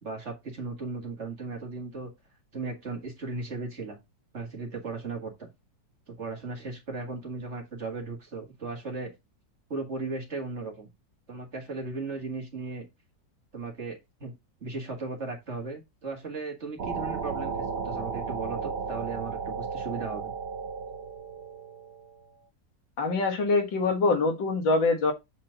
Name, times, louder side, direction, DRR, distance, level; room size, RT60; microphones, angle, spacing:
voice 1, 0.0-2.1 2.5-4.0 4.3-5.5 6.1-9.1 9.7-10.9 11.3-12.9 13.5-14.3 14.6-20.3, right 3 dB, 40° right, 2.0 m, -36 dB
sound 1, 16.8-22.2, right 5 dB, 55° right, 0.7 m, -34 dB
voice 2, 23.0-25.1, left 3 dB, 85° left, 2.3 m, -24 dB
7.5 x 4.4 x 3.9 m
omnidirectional pair, 2.0 m